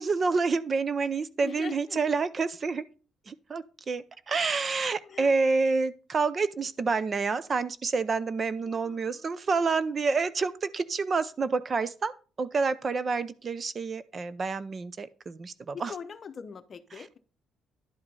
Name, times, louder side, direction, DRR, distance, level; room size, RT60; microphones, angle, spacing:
voice 1, 0.0-2.9 3.3-12.1 12.4-15.9 16.9-17.0, right 4 dB, 35° right, 0.5 m, -28 dB
voice 2, 1.4-2.0 5.0-5.3 8.7-9.3 15.7-17.2, left 6 dB, 40° left, 0.8 m, -42 dB
11.0 x 4.9 x 5.4 m
cardioid pair, 120°, 0 cm